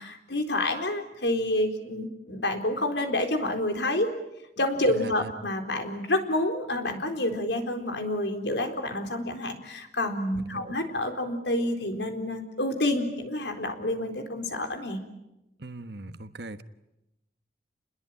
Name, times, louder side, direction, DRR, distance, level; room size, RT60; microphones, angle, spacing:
voice 1, 0.0-4.1 4.6-15.0, left 1 dB, 80° left, 5 dB, 4.1 m, -28 dB
voice 2, 4.9-5.3 10.4-10.8 15.6-16.6, right 2 dB, 70° right, 11 dB, 1.3 m, -40 dB
30.0 x 21.0 x 9.2 m, 0.93 s
head